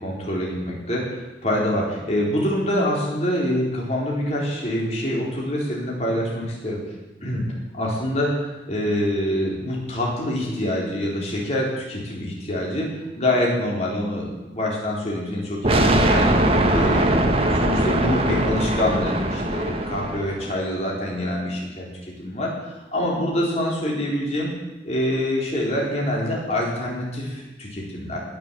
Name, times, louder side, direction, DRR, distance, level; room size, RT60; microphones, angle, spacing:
voice 1, 0.0-6.8 7.2-7.4 7.8-21.9 22.2-24.5 24.8-28.2, left 1 dB, 35° left, -3 dB, 4.2 m, -25 dB
sound 1, 15.6-20.5, right 1 dB, 30° right, 1.3 m, -21 dB
20.0 x 7.0 x 7.8 m, 1.1 s
head